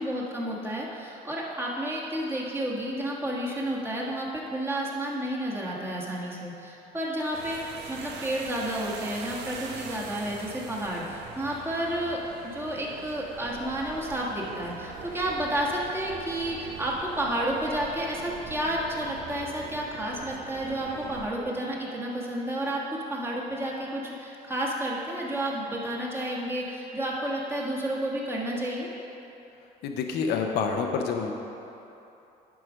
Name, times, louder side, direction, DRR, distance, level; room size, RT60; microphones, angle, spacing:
voice 1, 0.0-7.6 7.9-28.9, right 1 dB, 15° right, -4 dB, 1.5 m, -31 dB
sound 1, 7.3-21.3, right 4 dB, 80° right, 0.9 m, -42 dB
voice 2, 29.8-31.3, left 5 dB, 80° left, 3 dB, 0.8 m, -27 dB
11.0 x 4.9 x 5.1 m, 2.9 s
cardioid pair, 110°, 17 cm